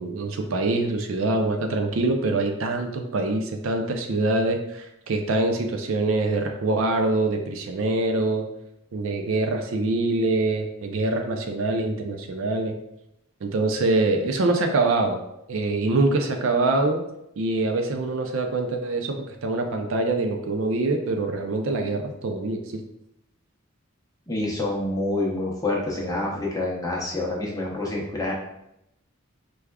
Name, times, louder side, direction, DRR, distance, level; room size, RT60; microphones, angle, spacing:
voice 1, 0.0-8.4 8.9-12.8 13.4-15.2 15.5-17.0 17.4-22.6, right 2 dB, 65° right, 4 dB, 0.4 m, -24 dB
voice 2, 24.3-28.3, left 2 dB, 15° left, -3 dB, 0.6 m, -27 dB
4.7 x 2.3 x 2.2 m, 0.83 s
head